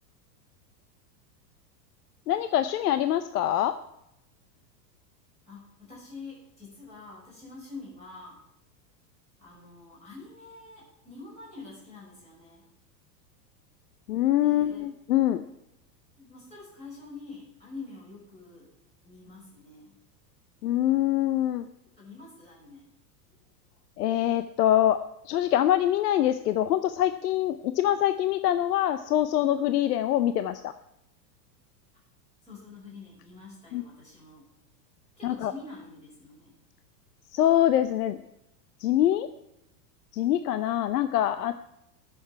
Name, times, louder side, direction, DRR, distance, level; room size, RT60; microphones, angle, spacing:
voice 1, 2.3-3.7 14.1-15.4 20.6-21.7 24.0-25.0 25.2-30.7 33.7-33.8 35.2-35.5 37.3-38.2 38.8-39.3 40.1-41.5, left 12 dB, 70° left, 10 dB, 0.8 m, -24 dB
voice 2, 5.5-8.4 9.4-12.6 14.4-14.8 16.2-18.7 19.0-20.0 22.0-22.8 32.4-34.4 35.2-36.6, left 3 dB, 15° left, -5 dB, 6.0 m, -46 dB
20.0 x 7.3 x 4.6 m, 0.85 s
supercardioid pair, 180°, 50 cm